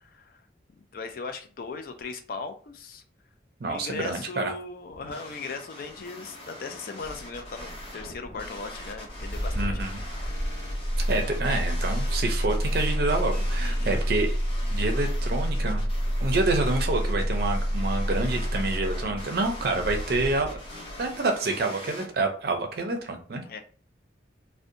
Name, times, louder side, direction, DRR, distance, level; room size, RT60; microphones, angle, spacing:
voice 1, 0.0-0.4 0.9-3.0 3.6-9.9 13.6-13.9 23.4-23.6, left 4 dB, 50° left, 6 dB, 0.4 m, -38 dB
voice 2, 3.6-4.5 9.5-10.0 11.1-14.4 14.7-15.9 16.2-20.6 21.0-23.4, right 2 dB, 55° right, 4 dB, 0.5 m, -28 dB
sound 1, 4.9-22.1, left 1 dB, 30° left, 0.8 m, -43 dB
Engine starting, 7.0-21.1, equal, 75° left, 0.7 m, -29 dB
2.6 x 2.1 x 2.5 m, 0.41 s
head